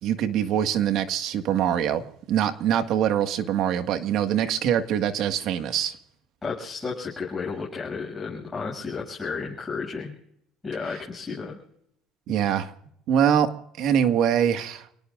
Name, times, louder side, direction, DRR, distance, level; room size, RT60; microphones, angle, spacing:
voice 1, 0.0-2.0 2.3-6.0 12.3-12.7 13.1-13.5 13.8-14.9, right 9 dB, 65° right, 8 dB, 1.7 m, -23 dB
voice 2, 6.4-10.1 10.6-11.6, left 4 dB, 20° left, -4 dB, 7.4 m, -32 dB
29.5 x 18.5 x 2.5 m, 0.72 s
cardioid pair, 115°, 0 cm